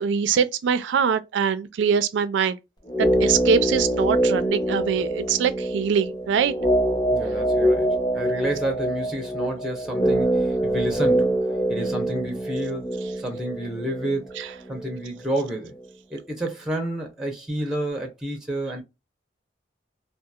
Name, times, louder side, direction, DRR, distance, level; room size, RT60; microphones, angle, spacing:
voice 1, 0.0-2.6 3.0-6.5 14.4-14.5, right 6 dB, 75° right, 0.3 m, -23 dB
sound 1, 2.9-15.0 15.2-15.3, right 1 dB, 25° left, 1.0 m, -24 dB
voice 2, 7.1-11.4 11.7-12.9 13.2-14.3 14.7-15.8 16.1-18.8, right 1 dB, 5° right, 0.6 m, -30 dB
2.7 x 2.3 x 2.2 m
head